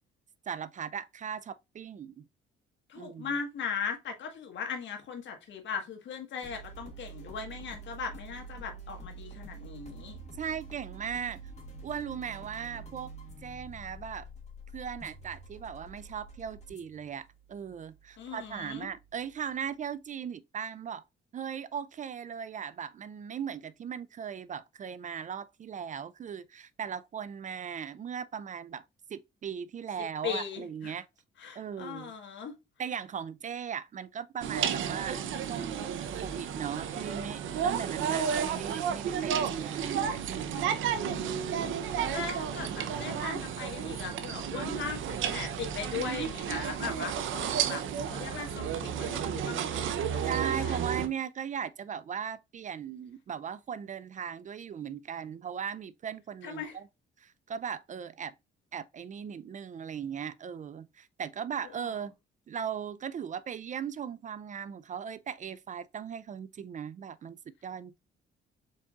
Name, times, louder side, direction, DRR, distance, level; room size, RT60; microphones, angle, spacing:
voice 1, 0.5-2.3 3.0-3.4 10.3-11.4 11.8-13.1 13.4-14.3 14.7-21.0 21.3-28.8 29.1-31.1 31.5-32.1 32.8-40.8 50.2-56.9 57.2-58.3 58.7-62.1 62.5-68.0, right 8 dB, 40° right, 0.4 m, -38 dB
voice 2, 2.9-10.2 18.2-18.9 30.2-31.0 31.4-32.5 40.9-41.7 42.1-47.8 48.1-50.3 50.6-50.8 56.4-56.8, left 6 dB, 70° left, 1.4 m, -38 dB
sound 1, 6.4-19.8, right 3 dB, 35° left, 1.9 m, -48 dB
sound 2, 34.4-51.1, right 8 dB, 80° right, 0.7 m, -32 dB
4.5 x 4.2 x 2.4 m
cardioid pair, 90°, 20 cm